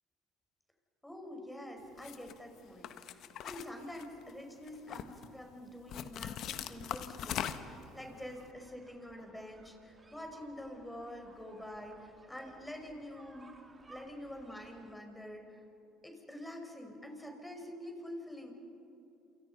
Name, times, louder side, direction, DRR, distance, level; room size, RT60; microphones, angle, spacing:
voice 1, 1.0-13.5 13.9-15.6 16.0-18.5, left 1 dB, 10° left, 3 dB, 5.3 m, -46 dB
sound 1, 2.0-2.3 2.8-4.3 4.7-5.3 5.9-7.8, left 10 dB, 60° left, 1.3 m, -40 dB
sound 2, 7.3-14.9, right 3 dB, 25° right, 2.8 m, -61 dB
28.5 x 28.0 x 5.6 m, 2.8 s
hypercardioid pair, 65°, 0 cm